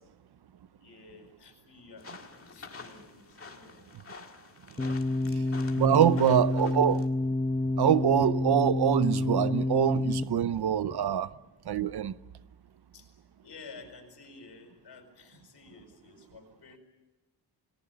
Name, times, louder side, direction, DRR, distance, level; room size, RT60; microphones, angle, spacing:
voice 1, 0.7-3.9 5.3-5.6 6.0-6.2 6.5-6.7 10.2-10.5 10.8-11.0 11.3-11.4 12.9-13.1 13.4-16.8, left 4 dB, 75° left, 5.0 m, -51 dB
sound 1, 2.0-7.1, left 4 dB, 35° left, 1.9 m, -48 dB
sound 2, 4.8-10.2, left 2 dB, 15° left, 0.8 m, -28 dB
voice 2, 5.8-7.1 7.8-11.3 11.7-12.1, right 10 dB, 65° right, 0.7 m, -25 dB
29.0 x 18.5 x 6.9 m
wide cardioid pair, 170°, 41 cm